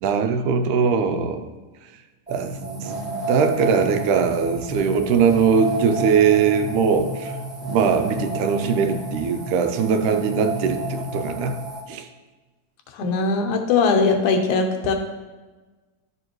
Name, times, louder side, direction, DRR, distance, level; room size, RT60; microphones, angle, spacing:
voice 1, 0.0-1.5 2.3-7.3 7.6-12.1, right 6 dB, 90° right, 7 dB, 2.1 m, -21 dB
sound 1, 2.3-11.8, right 2 dB, 20° right, 1.5 m, -31 dB
voice 2, 12.9-14.9, left 4 dB, 85° left, 4 dB, 2.3 m, -20 dB
11.0 x 6.7 x 3.1 m, 1.3 s
omnidirectional pair, 3.4 m